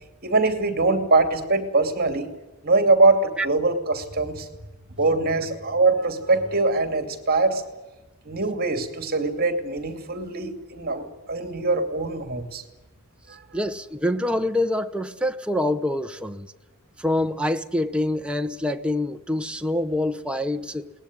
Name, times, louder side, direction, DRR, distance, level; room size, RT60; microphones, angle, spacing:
voice 1, 0.2-2.3 2.6-4.5 4.9-7.6 8.2-12.6 13.3-13.4, right 3 dB, 45° right, 2.6 m, -22 dB
voice 2, 13.5-16.5 17.0-20.9, left 1 dB, 5° right, 0.9 m, -25 dB
21.5 x 19.0 x 9.7 m
head